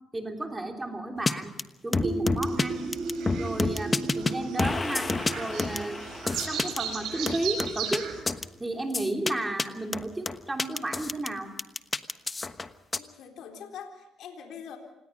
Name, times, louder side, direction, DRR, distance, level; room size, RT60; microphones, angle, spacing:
voice 1, 0.1-1.5 1.8-2.9 3.3-6.0 6.5-8.1 8.6-11.5, right 2 dB, 15° right, 3 dB, 3.2 m, -33 dB
sound 1, 1.3-1.4 1.6-1.7 1.9-2.7 2.9-4.3 4.6-6.8 7.3-8.0 8.3-8.4 8.9-9.3 9.6-9.7 9.9-11.3 11.6-13.0, left 3 dB, 25° left, 1.2 m, -28 dB
sound 2, 2.0-7.6, right 2 dB, 40° right, 5.3 m, -35 dB
sound 3, 2.4-8.2, right 7 dB, 75° right, 6.6 m, -37 dB
voice 2, 13.0-14.8, left 7 dB, 70° left, 3 dB, 3.8 m, -43 dB
27.0 x 19.5 x 5.5 m, 0.94 s
cardioid pair, 90°, 0 cm